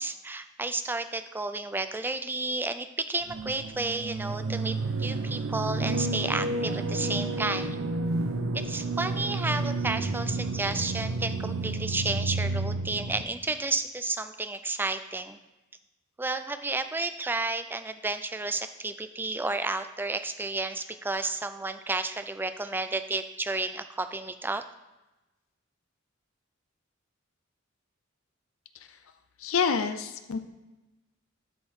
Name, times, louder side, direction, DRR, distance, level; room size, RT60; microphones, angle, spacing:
voice 1, 0.0-7.8 8.5-15.4 16.2-24.6, right 3 dB, 10° right, 10 dB, 0.3 m, -32 dB
sound 1, 3.3-13.2, right 2 dB, 65° right, 0.6 m, -30 dB
voice 2, 29.4-30.4, left 6 dB, 75° left, 9 dB, 0.5 m, -28 dB
12.5 x 4.4 x 3.7 m, 1.0 s
head